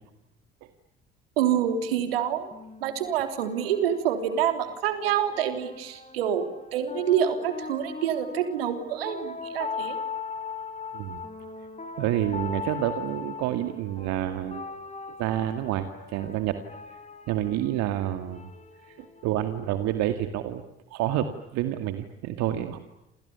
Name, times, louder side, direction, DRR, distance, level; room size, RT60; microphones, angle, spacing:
voice 1, 1.4-2.5 2.8-10.0, right 9 dB, 80° right, 8 dB, 3.3 m, -27 dB
sound 1, 2.5-20.0, left 5 dB, 25° left, 5.6 m, -40 dB
voice 2, 12.0-14.7 15.2-16.6 17.3-18.5 18.8-20.6 20.9-22.8, right 12 dB, 65° right, 8 dB, 2.2 m, -28 dB
29.5 x 28.0 x 7.0 m, 0.89 s
hypercardioid pair, 55°, 29 cm